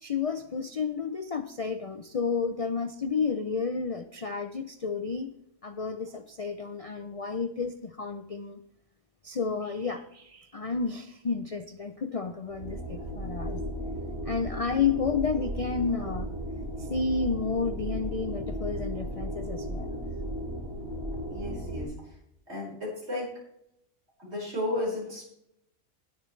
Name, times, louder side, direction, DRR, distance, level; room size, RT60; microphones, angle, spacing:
voice 1, 0.0-5.3 5.6-8.6 9.2-13.6 14.3-16.3 16.8-19.9, left 5 dB, 70° left, 8 dB, 0.3 m, -31 dB
sound 1, 12.5-21.8, equal, 75° right, 6.0 m, -35 dB
voice 2, 21.3-21.9 22.5-23.3 24.2-25.3, left 1 dB, 45° right, -5 dB, 5.5 m, -33 dB
19.5 x 6.8 x 3.2 m, 0.77 s
omnidirectional pair, 1.5 m